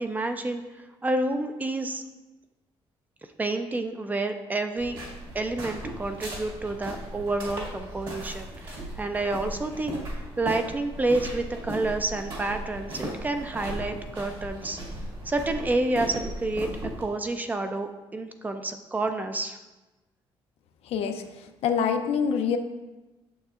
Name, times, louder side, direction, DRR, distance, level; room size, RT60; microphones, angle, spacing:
voice 1, 0.0-2.0 3.4-5.0 5.3-14.8 15.2-16.7 17.0-19.6, right 2 dB, 15° right, 7 dB, 0.4 m, -29 dB
sound 1, 4.8-17.0, right 1 dB, 55° right, 2.0 m, -37 dB
voice 2, 20.8-21.2 21.6-22.6, left 7 dB, 80° left, 6 dB, 0.6 m, -25 dB
9.0 x 6.9 x 2.5 m, 1.1 s
cardioid pair, 170°, 10 cm